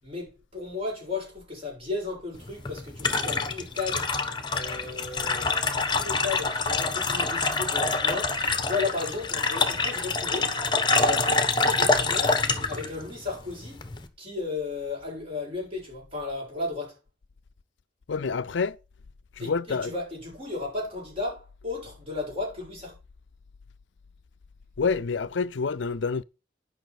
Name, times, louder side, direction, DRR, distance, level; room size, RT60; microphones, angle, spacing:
voice 1, 0.0-4.1 4.5-5.5 5.9-8.4 8.7-10.6 11.0-12.4 12.7-13.8 14.2-17.0 19.4-22.9, left 3 dB, 30° right, 6.8 m, -34 dB
sound 1, 2.4-14.1, left 3 dB, 25° left, 1.1 m, -26 dB
voice 2, 18.1-18.8 19.4-19.9 24.8-26.2, left 5 dB, 80° left, 0.5 m, -27 dB
9.3 x 5.7 x 5.8 m
head